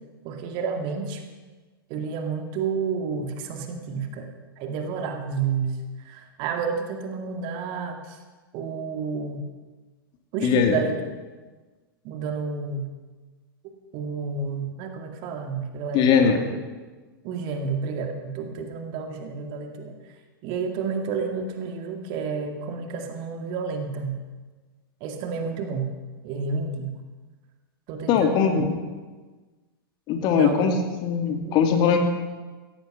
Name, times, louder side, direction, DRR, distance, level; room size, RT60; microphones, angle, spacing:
voice 1, 0.2-1.2 1.9-4.3 4.6-5.8 6.0-8.2 8.5-9.4 10.3-11.0 12.0-12.9 13.9-16.5 17.2-20.0 20.4-24.2 25.0-25.9 26.2-27.0 27.9-28.7 30.1-30.8 31.2-31.6, right 5 dB, 40° right, 4 dB, 2.1 m, -30 dB
voice 2, 10.4-10.8 15.9-16.4 28.1-28.7 30.1-30.7 31.0-32.0, left 7 dB, 35° left, 5 dB, 2.3 m, -20 dB
16.0 x 15.0 x 5.8 m, 1.3 s
figure-of-eight pair, 100°, 12 cm